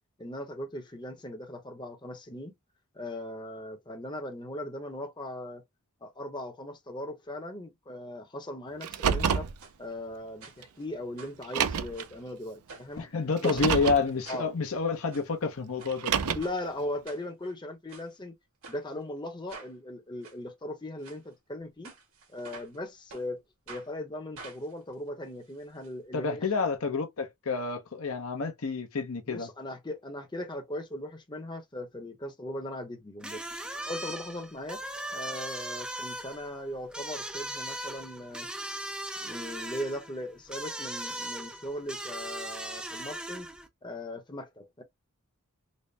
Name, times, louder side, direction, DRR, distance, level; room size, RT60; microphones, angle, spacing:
voice 1, 0.2-2.5 2.9-5.6 6.0-9.5 9.8-13.1 13.4-13.6 14.3-14.5 16.2-18.3 18.7-21.9 22.3-23.4 23.7-26.5 29.3-33.5 33.8-34.8 35.1-38.5 39.2-43.5 43.8-44.8, left 1 dB, 20° left, 0.8 m, -38 dB
Car, 8.8-9.5 10.6-10.7 11.4-12.0 13.4-14.0 15.9-16.6, right 7 dB, 85° right, 0.5 m, -28 dB
sound 1, 9.6-9.8 10.4-10.9 11.2-12.2 12.7-13.0 13.4-13.6 14.2-14.5 14.9-15.3 15.8-16.0 16.4-16.6 17.1-17.5 17.9-18.1 18.6-18.8 19.5-19.7 20.2-20.4 21.0-21.2 21.8-22.8 23.1-23.3 23.7-23.9 24.4-25.9 26.2-26.3 26.5-26.6, right 4 dB, 70° right, 1.6 m, -48 dB
voice 2, 13.0-16.1 26.1-29.5, left 4 dB, 65° left, 0.8 m, -29 dB
sound 2, 33.2-43.7, right 1 dB, 5° right, 0.4 m, -39 dB
4.0 x 2.0 x 3.2 m
head